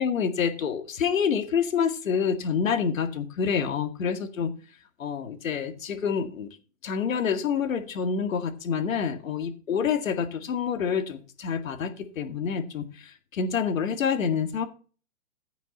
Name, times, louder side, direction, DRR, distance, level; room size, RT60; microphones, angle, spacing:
voice 1, 0.0-4.5 5.0-6.6 6.8-14.7, left 6 dB, 75° left, 2.0 m, -27 dB
15.0 x 6.2 x 4.2 m
hypercardioid pair, 165°, 40 cm